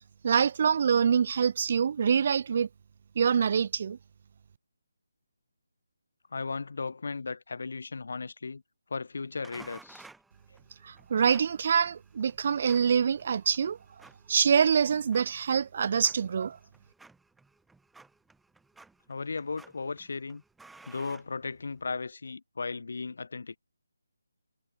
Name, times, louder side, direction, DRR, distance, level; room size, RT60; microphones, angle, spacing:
voice 1, 0.2-2.7 3.2-4.0 10.8-13.8 14.3-16.6, right 7 dB, 30° right, 0.4 m, -25 dB
voice 2, 6.3-8.6 8.9-10.1 19.1-20.4 20.9-23.6, left 4 dB, 55° left, 4.1 m, -36 dB
sound 1, 9.4-21.9, right 3 dB, ahead, 3.2 m, -56 dB
hypercardioid pair, 175°, 0 cm